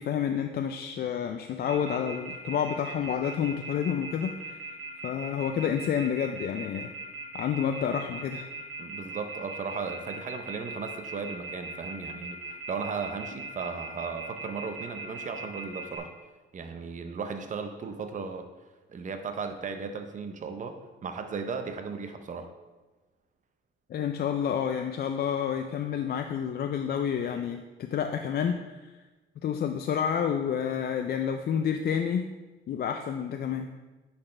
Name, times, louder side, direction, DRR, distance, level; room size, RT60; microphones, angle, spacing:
voice 1, 0.0-4.6 5.0-6.9 7.3-8.5 23.9-28.9 29.4-32.3 32.7-33.7, left 8 dB, 50° left, 6 dB, 0.4 m, -29 dB
Telephone, 1.7-16.0, right 4 dB, 85° right, 1.7 m, -39 dB
voice 2, 8.8-16.1 16.5-18.5 18.9-22.5, right 5 dB, 40° right, 6 dB, 0.7 m, -36 dB
9.7 x 4.3 x 3.2 m, 1.2 s
cardioid pair, 90°, 20 cm